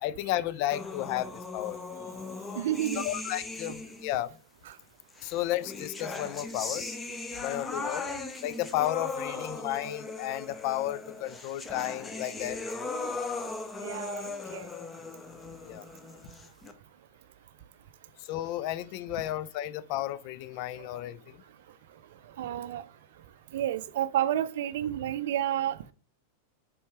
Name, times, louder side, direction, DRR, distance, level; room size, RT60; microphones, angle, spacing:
voice 1, 0.0-1.8 3.0-4.4 5.2-6.8 7.4-8.1 8.4-12.6 15.6-15.9 18.2-21.4, left 14 dB, 45° left, 0.4 m, -33 dB
sound 1, 0.7-4.2 5.2-16.7, left 3 dB, 15° left, 0.8 m, -38 dB
voice 2, 2.6-3.0 4.7-4.8 13.8-14.7 22.4-22.8 23.5-25.9, right 11 dB, 55° right, 0.5 m, -30 dB
7.0 x 4.6 x 3.3 m
figure-of-eight pair, 90°, 0 cm